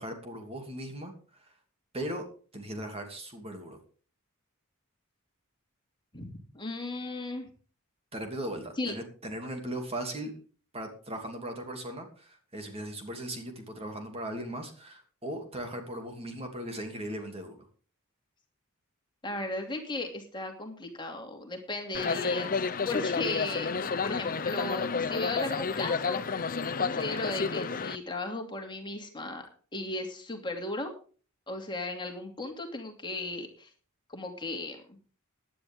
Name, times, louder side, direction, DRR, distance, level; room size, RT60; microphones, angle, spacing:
voice 1, 0.0-1.5 1.9-2.3 2.5-3.8 8.1-10.3 10.7-17.6, right 1 dB, 30° right, 4 dB, 2.8 m, -38 dB
voice 2, 6.1-7.5 8.8-8.9 19.2-26.2 26.8-29.5 29.7-30.9 31.5-33.7 34.1-35.0, left 2 dB, 20° left, 3 dB, 2.6 m, -36 dB
sound 1, 21.9-28.0, left 5 dB, 40° left, 0.8 m, -31 dB
17.0 x 10.5 x 3.7 m, 0.39 s
head